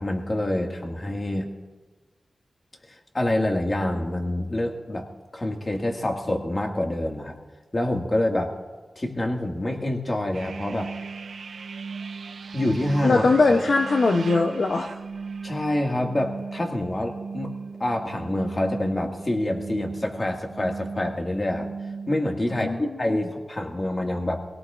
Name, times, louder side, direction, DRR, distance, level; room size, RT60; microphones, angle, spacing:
voice 1, 0.0-1.5 2.9-5.0 5.3-7.4 7.7-8.5 9.0-10.9 12.5-13.3 15.4-17.5 17.8-21.7 22.1-24.4, left 1 dB, 35° left, 2 dB, 1.9 m, -26 dB
sound 1, 10.3-22.2, right 5 dB, 85° right, 0.6 m, -37 dB
voice 2, 13.0-14.9 22.5-23.3, left 3 dB, 65° left, 4 dB, 0.7 m, -21 dB
23.0 x 17.5 x 2.5 m, 1.3 s
wide cardioid pair, 70°, 0 cm